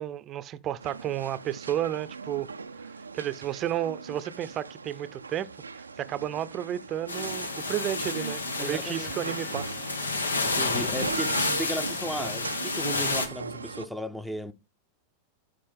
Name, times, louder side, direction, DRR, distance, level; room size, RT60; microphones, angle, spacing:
voice 1, 0.0-2.5 3.1-5.5 5.7-9.7, right 11 dB, 30° right, 0.7 m, -32 dB
sound 1, 0.8-13.9, right 5 dB, 75° right, 0.5 m, -39 dB
sound 2, 7.1-13.3, left 3 dB, 75° left, 1.0 m, -30 dB
Male speech man speaking, 7.1-12.6, left 8 dB, 50° left, 0.7 m, -45 dB
voice 2, 8.6-9.3 10.4-14.5, equal, ahead, 0.7 m, -35 dB
13.0 x 5.3 x 3.5 m
figure-of-eight pair, 90°, 0 cm